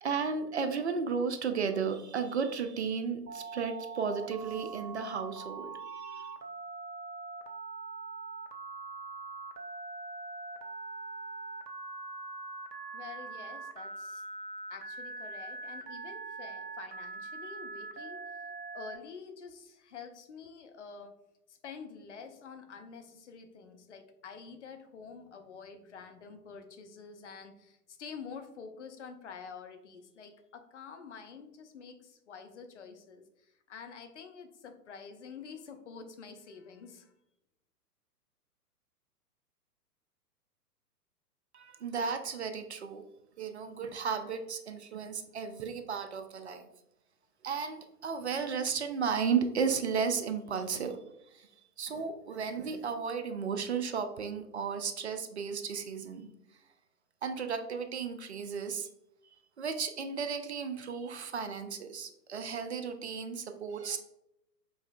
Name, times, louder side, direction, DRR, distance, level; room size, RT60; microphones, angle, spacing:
voice 1, 0.0-6.3 41.5-43.0 43.4-46.7 47.4-51.0 51.3-51.5 51.8-56.3 57.2-58.9 59.6-64.0, right 6 dB, 45° right, 8 dB, 0.4 m, -34 dB
Telephone, 3.3-19.0, right 3 dB, 80° right, 0.7 m, -42 dB
voice 2, 12.9-14.3 14.7-18.4 18.7-21.1 21.5-37.1, left 5 dB, 50° left, 6 dB, 0.6 m, -48 dB
5.5 x 3.1 x 2.3 m, 0.86 s
figure-of-eight pair, 115°, 48 cm